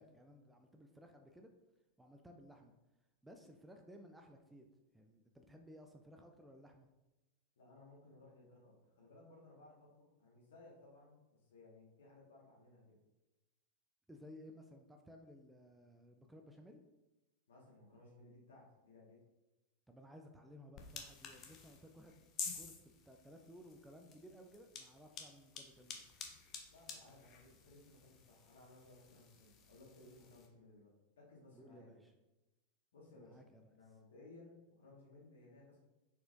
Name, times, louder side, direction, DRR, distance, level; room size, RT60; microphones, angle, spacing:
voice 1, 0.0-1.5 2.0-2.7 3.2-4.7 4.9-6.9 14.1-16.8 19.9-22.3 22.5-26.0 31.5-32.1 33.1-33.7, equal, 5° right, 4 dB, 0.4 m, -58 dB
voice 2, 7.6-13.0 17.5-19.2 26.7-32.0 32.9-33.4 33.7-35.8, left 2 dB, 60° left, -4 dB, 1.5 m, -60 dB
sound 1, 20.7-30.5, left 5 dB, 30° left, 0.6 m, -51 dB
4.3 x 4.2 x 2.5 m, 1.0 s
figure-of-eight pair, 90°, 0 cm